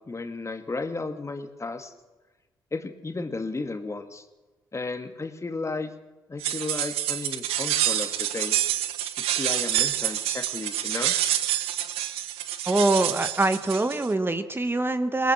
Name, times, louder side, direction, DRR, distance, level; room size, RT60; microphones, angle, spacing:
voice 1, 0.1-1.9 2.7-4.3 4.7-5.9 6.3-8.6 9.3-11.1, left 3 dB, 30° left, 7 dB, 2.2 m, -33 dB
sound 1, 6.4-14.1, right 12 dB, 75° right, 1.1 m, -27 dB
voice 2, 12.7-15.3, right 2 dB, 20° right, 10 dB, 1.4 m, -24 dB
23.0 x 19.0 x 6.2 m, 1.2 s
hypercardioid pair, 40°, 10 cm